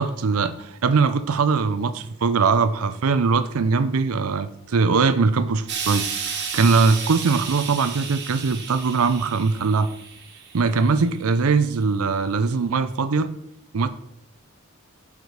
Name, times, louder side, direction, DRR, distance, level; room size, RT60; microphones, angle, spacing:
voice 1, 0.0-9.9 10.5-13.3 13.7-13.9, right 4 dB, 80° right, 12 dB, 0.5 m, -21 dB
Explosion, 5.7-11.0 11.8-11.9, right 6 dB, 50° right, 1.4 m, -32 dB
8.1 x 5.0 x 5.0 m, 0.78 s
head